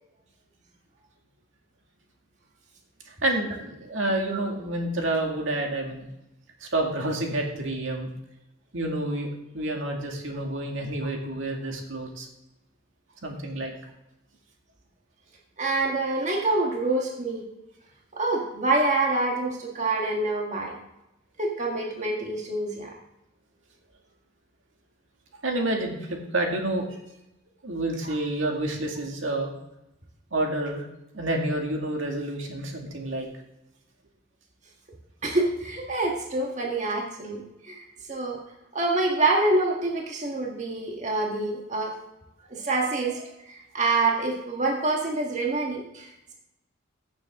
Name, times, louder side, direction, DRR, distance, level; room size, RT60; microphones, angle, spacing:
voice 1, 3.1-6.0 6.6-8.1 8.7-9.3 9.5-12.3 13.2-13.7 25.4-27.0 27.6-29.5 30.3-30.8 31.1-33.3, right 1 dB, 75° right, 1 dB, 2.1 m, -29 dB
voice 2, 15.6-17.5 18.1-20.8 21.4-22.9 28.0-28.2 35.2-38.4 38.7-41.9 42.5-46.3, right 2 dB, 35° right, 0 dB, 1.6 m, -26 dB
15.5 x 7.3 x 3.7 m, 0.90 s
head